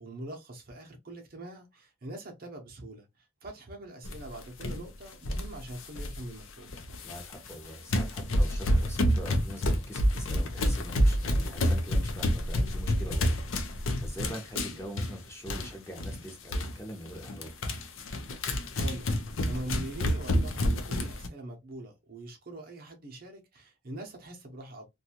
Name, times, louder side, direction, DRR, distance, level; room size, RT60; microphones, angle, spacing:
voice 1, 0.0-3.1 3.4-6.7 18.5-19.1 19.4-24.9, right 1 dB, 50° right, 0.7 m, -43 dB
sound 1, 4.0-4.3 4.6-4.8 5.2-6.2 6.7-7.5 7.9-15.7 16.0-16.2 16.5-16.7 17.1-21.3, equal, 90° left, 0.5 m, -28 dB
voice 2, 7.0-17.6, equal, 15° left, 0.7 m, -43 dB
2.6 x 2.3 x 2.8 m
head